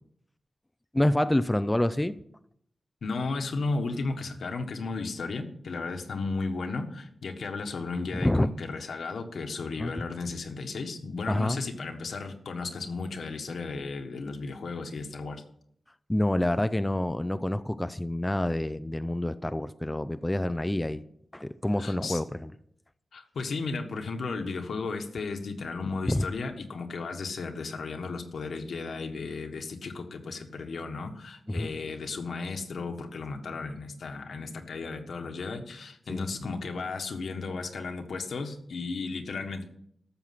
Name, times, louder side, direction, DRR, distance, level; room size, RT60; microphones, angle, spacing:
voice 1, 0.9-2.1 8.2-8.5 9.8-9.9 11.3-11.6 16.1-21.0 21.3-22.5 26.1-26.3 31.5-31.7 36.1-36.3, left 1 dB, 10° left, 0.4 m, -27 dB
voice 2, 3.0-15.4 21.8-22.2 23.1-39.6, left 4 dB, 80° left, 1.4 m, -34 dB
13.0 x 7.3 x 5.9 m
wide cardioid pair, 115°, 0 cm